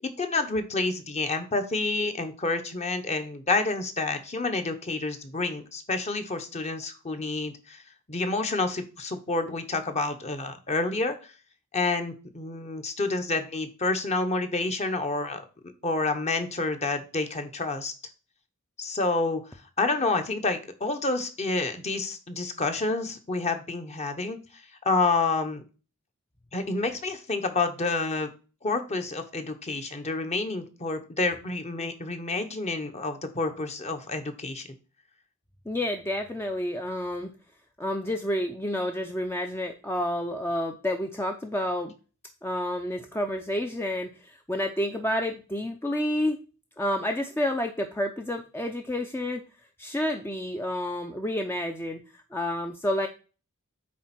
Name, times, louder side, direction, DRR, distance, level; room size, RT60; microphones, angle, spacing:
voice 1, 0.0-7.8 8.1-11.3 11.7-15.4 15.8-17.9 18.8-19.4 19.8-24.4 24.8-25.6 26.5-28.3 28.6-34.7, left 3 dB, 30° left, 7 dB, 1.0 m, -29 dB
voice 2, 35.7-37.3 37.8-41.9 42.4-46.4 46.8-49.4 49.8-53.1, left 1 dB, 10° left, 4 dB, 0.5 m, -29 dB
8.6 x 3.6 x 5.9 m, 0.35 s
head